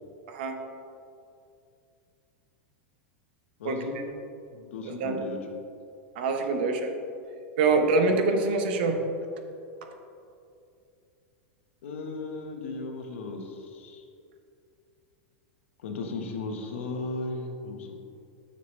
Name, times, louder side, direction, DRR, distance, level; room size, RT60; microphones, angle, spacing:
voice 1, 0.3-0.6 3.6-4.0 4.9-5.2 6.2-6.9 7.6-9.0, right 3 dB, 50° right, 5 dB, 0.8 m, -25 dB
voice 2, 3.6-4.0 4.5-5.4 11.8-14.0 15.8-17.9, left 3 dB, 85° left, 3 dB, 1.1 m, -36 dB
9.5 x 6.7 x 3.2 m, 2.5 s
supercardioid pair, 175°, 7 cm